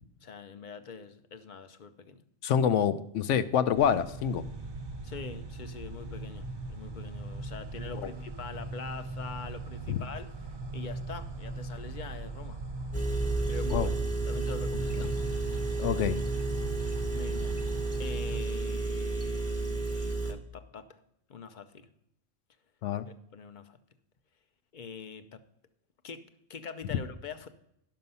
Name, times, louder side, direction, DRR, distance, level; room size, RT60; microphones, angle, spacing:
voice 1, 0.2-2.2 5.0-10.3 10.7-12.6 13.5-14.0 14.2-15.1 17.1-17.6 18.0-21.0 21.3-21.9 23.3-23.8 24.7-25.4 26.0-27.5, left 5 dB, 45° left, 10 dB, 0.7 m, -44 dB
voice 2, 2.4-4.4 8.0-8.1 9.9-10.0 13.7-13.9 15.8-16.2 22.8-23.1, left 8 dB, 75° left, 13 dB, 1.0 m, -26 dB
sound 1, 3.8-18.4, right 2 dB, 35° right, 0.4 m, -39 dB
Engine, 12.9-20.3, right 3 dB, 15° left, 1.0 m, -31 dB
10.5 x 6.6 x 5.4 m, 0.77 s
omnidirectional pair, 1.3 m